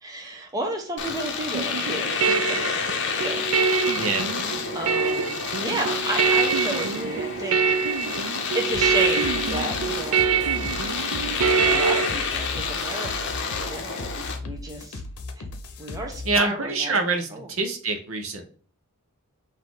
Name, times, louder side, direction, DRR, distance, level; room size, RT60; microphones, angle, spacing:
voice 1, 0.0-2.7 3.1-3.5 4.7-7.6 8.5-10.3 11.7-15.0 15.4-15.5 15.8-17.0 17.3-17.5, right 2 dB, 15° right, 1 dB, 0.8 m, -32 dB
Domestic sounds home sounds, 1.0-14.4, left 5 dB, 50° left, 0.7 m, -29 dB
sound 1, 1.5-12.1, right 5 dB, 80° right, 0.4 m, -25 dB
voice 2, 4.0-4.3 16.3-17.3 17.6-18.4, right 3 dB, 60° right, 5 dB, 0.8 m, -25 dB
sound 2, 8.7-16.4, left 2 dB, 90° left, 0.7 m, -37 dB
4.0 x 2.7 x 4.7 m, 0.42 s
head